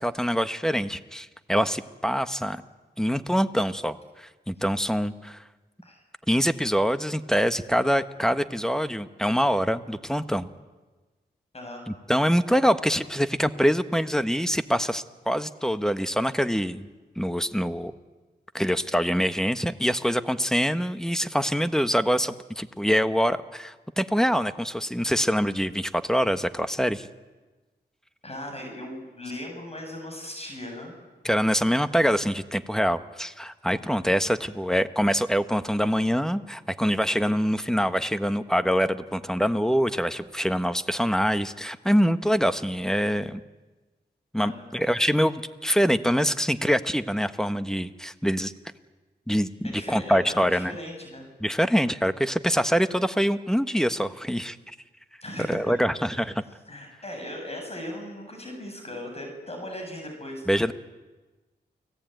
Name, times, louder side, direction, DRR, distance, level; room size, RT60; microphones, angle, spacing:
voice 1, 0.0-2.6 3.0-5.4 6.3-10.5 11.9-16.9 17.2-17.9 18.5-27.1 31.2-43.4 44.3-48.5 49.3-50.7 51.4-54.6 55.5-56.3 60.5-60.7, equal, 5° left, 11 dB, 1.3 m, -25 dB
voice 2, 11.5-11.8 28.2-30.9 33.7-33.9 44.4-44.7 49.7-51.3 55.2-55.8 56.1-56.3 56.7-60.7, left 1 dB, 35° left, 2 dB, 7.5 m, -38 dB
29.5 x 18.5 x 9.3 m, 1.2 s
cardioid pair, 70°, 18 cm